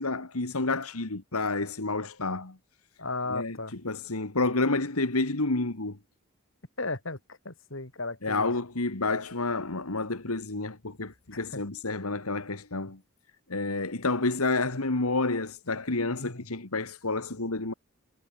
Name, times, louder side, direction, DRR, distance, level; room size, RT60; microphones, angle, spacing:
voice 1, 0.0-2.6 3.3-6.0 8.2-13.0 13.5-17.7, left 3 dB, 85° left, 2.1 m, -29 dB
voice 2, 3.0-3.7 6.8-7.2 7.4-8.5 11.5-11.6 16.2-16.4, left 3 dB, 60° left, 3.2 m, -35 dB
head